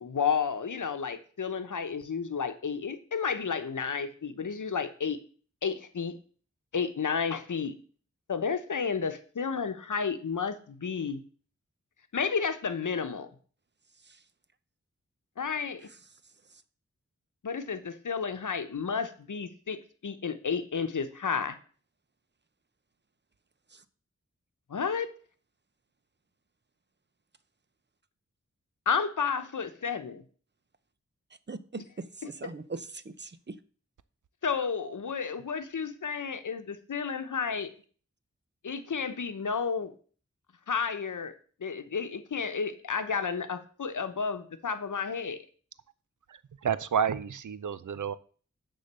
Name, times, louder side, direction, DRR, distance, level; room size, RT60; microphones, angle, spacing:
voice 1, 0.0-5.2 5.6-6.1 6.7-7.8 8.3-11.2 12.1-13.3 15.4-15.9 17.4-19.8 20.0-21.6 24.7-25.1 28.9-30.2 34.4-37.7 38.6-39.9 40.7-41.3 41.6-45.4, left 6 dB, 90° left, 9 dB, 0.9 m, -31 dB
voice 2, 31.5-33.6, right 3 dB, 35° right, 13 dB, 0.7 m, -41 dB
voice 3, 46.3-48.1, right 7 dB, 80° right, 15 dB, 0.6 m, -30 dB
9.8 x 4.0 x 6.7 m, 0.43 s
wide cardioid pair, 65°, 30 cm